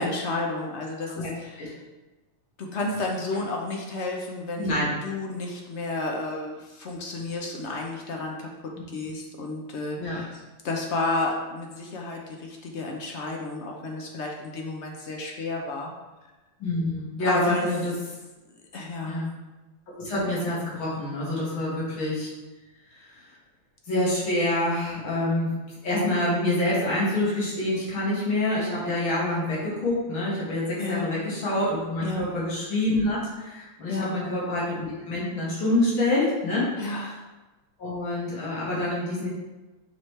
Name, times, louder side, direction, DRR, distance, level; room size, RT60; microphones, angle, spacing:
voice 1, 0.0-1.7 2.6-4.7 5.0-15.9 17.2-17.7 18.7-19.3 30.8-31.1 32.0-32.3 33.9-34.2 36.8-37.1, left 2 dB, 65° left, 0 dB, 0.6 m, -31 dB
voice 2, 4.6-4.9 10.0-10.2 16.6-17.9 19.1-19.3 20.0-22.3 22.9-23.2 23.9-25.5 25.8-37.1 37.8-39.3, left 1 dB, 85° left, -6 dB, 2.6 m, -27 dB
7.1 x 3.2 x 4.6 m, 1.1 s
omnidirectional pair, 2.2 m